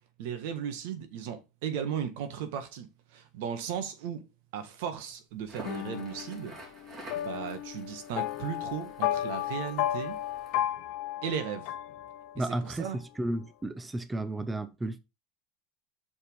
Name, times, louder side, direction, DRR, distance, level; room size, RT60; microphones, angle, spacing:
voice 1, 0.2-4.2 4.5-6.5 7.1-10.2 11.2-11.7 12.6-13.0, right 8 dB, 75° right, 1.5 m, -36 dB
Crackle, 5.4-10.6, right 2 dB, 35° right, 3.0 m, -50 dB
sound 1, 5.6-12.6, left 13 dB, 65° left, 0.8 m, -34 dB
voice 2, 12.4-15.0, right 1 dB, 15° right, 0.7 m, -33 dB
6.4 x 4.8 x 5.2 m
supercardioid pair, 110°, 0 cm